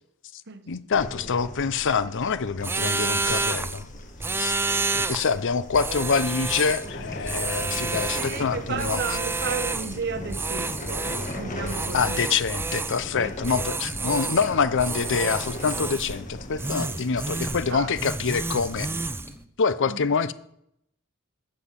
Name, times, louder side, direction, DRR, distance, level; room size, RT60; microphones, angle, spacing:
voice 1, 0.7-3.9 4.4-4.5 4.9-9.0 11.9-18.9 19.6-20.3, left 5 dB, 60° left, 0.6 m, -26 dB
sound 1, 0.9-18.9, left 1 dB, 35° left, 1.5 m, -40 dB
sound 2, 2.6-3.8 4.2-5.3 5.7-6.9 7.3-8.4 8.8-10.0 10.3-11.4 11.7-13.0 13.4-14.5 14.8-16.2 16.6-17.7 18.0-19.3, right 3 dB, 10° right, 0.4 m, -29 dB
sound 3, 6.8-19.4, equal, 10° left, 1.2 m, -42 dB
voice 2, 8.2-12.4 12.7-13.6 14.0-14.4 16.6-17.0 17.3-17.9 19.8-20.0, right 5 dB, 55° right, 1.0 m, -35 dB
10.0 x 7.7 x 7.3 m
head